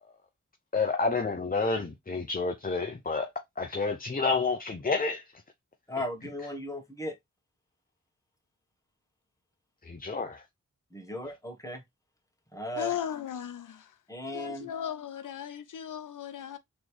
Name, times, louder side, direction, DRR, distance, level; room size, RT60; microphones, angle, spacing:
voice 1, 0.7-3.3 3.6-5.2 9.8-10.4, left 4 dB, 30° left, 0.7 m, -29 dB
voice 2, 5.9-7.1 10.9-11.8 12.5-12.9 14.1-14.7, left 1 dB, 10° left, 1.4 m, -36 dB
voice 3, 12.8-13.9 14.3-16.6, left 10 dB, 80° left, 0.5 m, -36 dB
3.8 x 3.1 x 3.2 m
cardioid pair, 50°, 31 cm